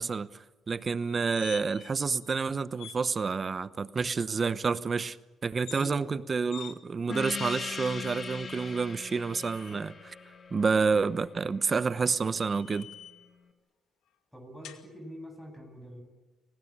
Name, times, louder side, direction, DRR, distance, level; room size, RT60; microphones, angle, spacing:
voice 1, 0.0-5.2 5.4-10.1 10.5-12.9, right 5 dB, 35° right, 0.9 m, -29 dB
sound 1, 1.0-1.9 2.2-2.3 2.8-3.0 5.5-5.9 6.5-6.8 7.4-8.0 9.0-9.8 11.7-13.3 14.6-14.8, left 10 dB, 85° left, 2.3 m, -48 dB
voice 2, 5.6-6.2 14.3-16.0, equal, ahead, 7.9 m, -45 dB
Gong, 7.1-12.1, left 5 dB, 45° left, 2.4 m, -40 dB
30.0 x 19.5 x 8.9 m
cardioid pair, 90°, 0 cm